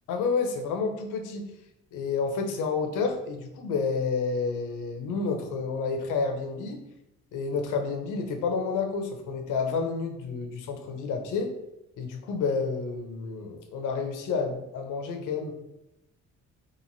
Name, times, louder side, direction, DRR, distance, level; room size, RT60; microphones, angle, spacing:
voice 1, 0.1-1.4 1.9-6.8 7.3-11.5 12.0-15.5, left 4 dB, 85° left, 4 dB, 0.6 m, -30 dB
3.0 x 2.5 x 2.6 m, 0.87 s
cardioid pair, 90°, 30 cm